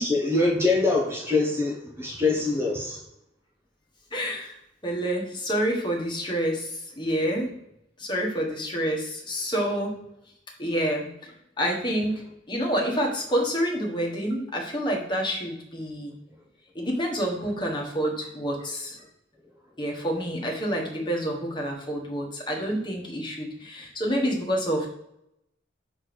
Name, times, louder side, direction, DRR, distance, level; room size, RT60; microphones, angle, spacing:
voice 1, 0.0-3.0, left 3 dB, 10° right, -2 dB, 0.9 m, -24 dB
voice 2, 4.1-4.6 4.8-7.5 8.0-9.9 10.6-11.3 11.6-12.2 12.5-16.1 16.7-19.0 19.8-24.9, equal, 25° left, -1 dB, 1.3 m, -28 dB
6.4 x 3.4 x 6.0 m, 0.80 s
head